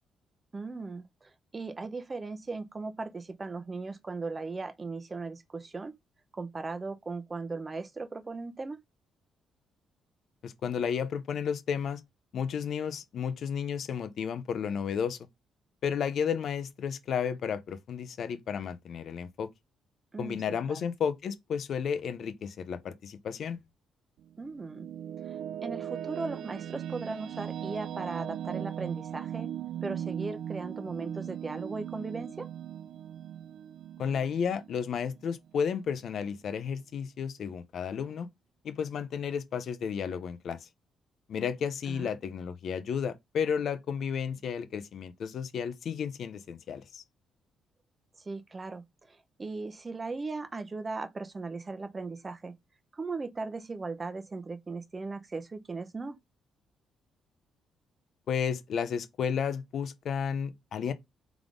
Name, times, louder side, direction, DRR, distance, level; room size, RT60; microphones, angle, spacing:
voice 1, 0.5-6.0 6.3-8.8 20.1-20.4 20.7-20.9 24.4-24.9 25.2-29.5 29.8-32.5 41.9-42.1 48.2-52.5 52.9-56.2, right 3 dB, 25° right, 0.7 m, -38 dB
voice 2, 10.4-12.0 12.3-15.2 15.8-19.5 20.2-23.6 34.0-38.3 38.6-40.7 41.3-47.0 58.3-60.9, left 7 dB, 65° left, 0.6 m, -32 dB
sound 1, 24.2-35.5, right 10 dB, 85° right, 0.4 m, -39 dB
3.7 x 3.5 x 3.7 m
cardioid pair, 90°, 0 cm